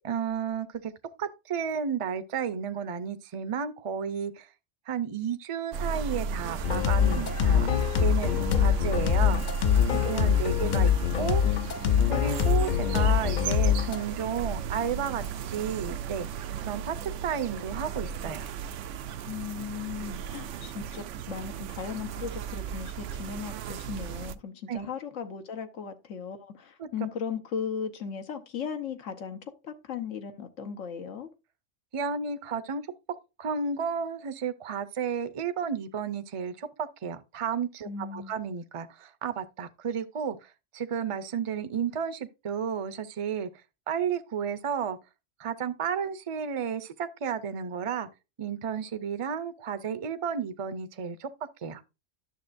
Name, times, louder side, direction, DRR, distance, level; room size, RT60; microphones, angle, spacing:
voice 1, 0.0-0.9 1.2-4.5 4.9-7.7 8.0-9.4 10.0-10.9 11.2-11.4 12.1-16.3 16.7-18.5 24.7-24.9 26.8-26.9 31.9-32.9 33.4-43.5 43.9-45.0 45.4-48.1 48.4-51.3 51.6-51.8, right 7 dB, 40° right, 0.5 m, -32 dB
sound 1, 5.7-24.3, right 7 dB, 80° right, 0.9 m, -35 dB
sound 2, 6.6-14.0, left 8 dB, 50° left, 0.6 m, -24 dB
voice 2, 10.0-10.5 19.3-31.3 37.8-38.3, left 7 dB, 85° left, 1.4 m, -37 dB
11.0 x 6.8 x 2.5 m
omnidirectional pair, 1.3 m